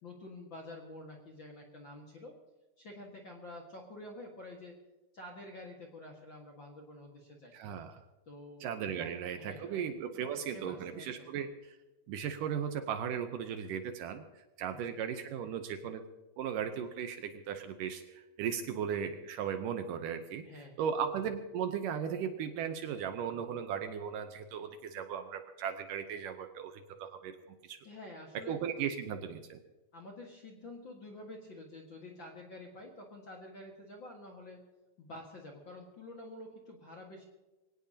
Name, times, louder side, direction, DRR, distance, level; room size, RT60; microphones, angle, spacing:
voice 1, 0.0-2.4 2.8-4.7 5.1-7.5 8.2-8.6 9.0-9.1 9.4-9.8 10.1-10.3 10.5-11.3 14.7-15.0 20.4-20.8 27.8-28.6 29.9-34.7 35.0-37.3, left 1 dB, 45° left, 0 dB, 1.7 m, -48 dB
voice 2, 7.5-8.0 8.6-11.8 12.1-14.2 14.6-16.0 16.4-20.5 20.8-27.4 27.6-27.8 28.5-29.6, right 8 dB, 75° right, 7 dB, 2.2 m, -37 dB
24.0 x 17.5 x 2.8 m, 1.1 s
omnidirectional pair, 4.3 m